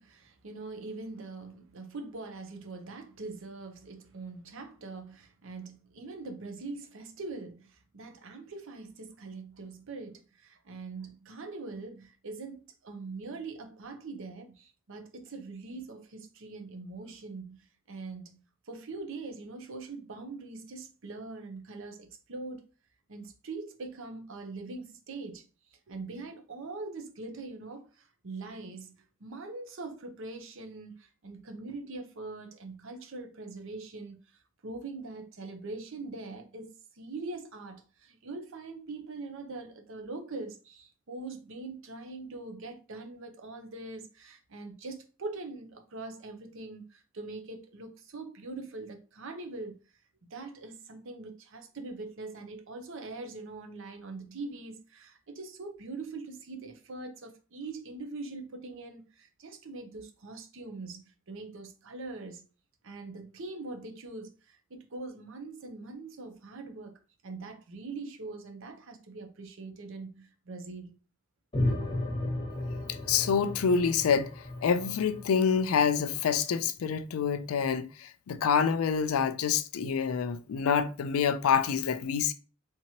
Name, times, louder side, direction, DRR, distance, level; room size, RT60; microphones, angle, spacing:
voice 1, 0.0-17.6 17.9-22.6 23.1-25.5 25.7-28.9 29.2-49.8 50.3-62.4 62.8-66.9 67.2-71.0, right 3 dB, 60° right, 0.7 m, -42 dB
sound 1, 71.5-76.2, left 1 dB, 25° left, 1.0 m, -34 dB
voice 2, 73.1-74.3 74.6-82.3, left 6 dB, 75° left, 0.4 m, -27 dB
3.5 x 2.9 x 2.8 m
head